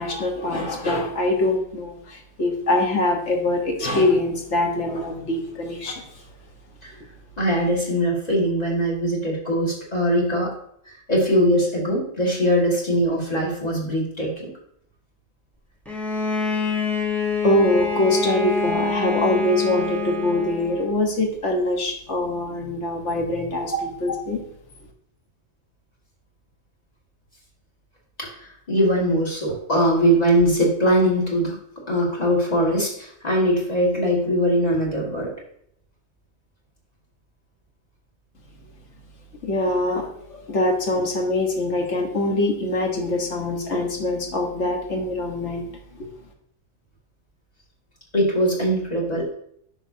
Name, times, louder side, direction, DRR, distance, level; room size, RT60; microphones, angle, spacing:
voice 1, 0.0-6.0 17.4-24.4 39.4-46.1, left 2 dB, 60° left, 2 dB, 1.6 m, -23 dB
voice 2, 7.4-10.5 11.1-14.5 23.7-23.8 28.2-31.6 31.9-35.3 48.1-49.3, equal, 30° left, -4 dB, 2.2 m, -21 dB
Bowed string instrument, 15.9-21.0, left 3 dB, ahead, 1.1 m, -26 dB
9.8 x 6.1 x 2.8 m, 0.68 s
omnidirectional pair, 1.4 m